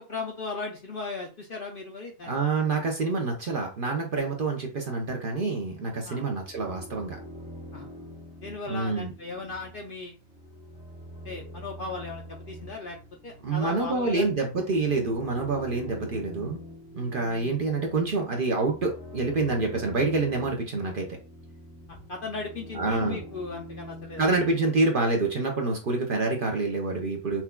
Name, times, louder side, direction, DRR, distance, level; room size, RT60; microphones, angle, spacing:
voice 1, 0.0-2.3 6.1-6.2 7.7-7.9 8.4-10.1 11.2-13.0 13.2-14.3 21.9-24.2, left 3 dB, 55° left, 1 dB, 0.6 m, -37 dB
voice 2, 2.2-7.2 8.7-9.1 13.4-16.6 16.9-21.2 22.7-23.2 24.2-27.4, right 3 dB, 50° right, 1 dB, 0.7 m, -27 dB
sound 1, 6.2-24.8, left 1 dB, 5° right, 0.4 m, -45 dB
5.8 x 2.2 x 2.2 m, 0.33 s
omnidirectional pair, 1.4 m